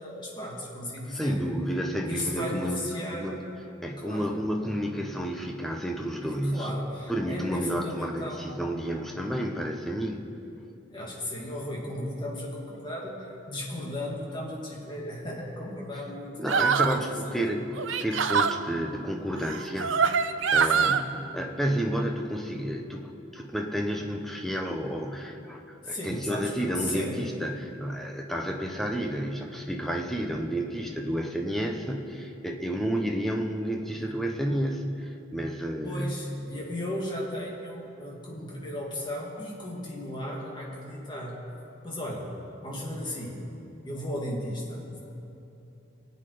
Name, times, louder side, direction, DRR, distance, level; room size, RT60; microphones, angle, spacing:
voice 1, 0.0-1.4 2.1-3.4 4.0-4.4 6.2-8.5 10.9-17.4 20.6-21.1 25.8-27.2 35.8-41.4 41.8-42.3 42.6-43.4 43.8-45.0, left 1 dB, 25° left, -3 dB, 2.6 m, -35 dB
voice 2, 1.1-2.8 3.1-3.4 3.8-6.7 7.1-10.2 16.4-21.0 21.3-36.2, equal, ahead, 1 dB, 1.0 m, -31 dB
sound 1, 16.5-17.0 17.8-18.6 19.5-21.0, right 6 dB, 75° right, 0.6 m, -24 dB
24.5 x 8.3 x 5.1 m, 2.9 s
head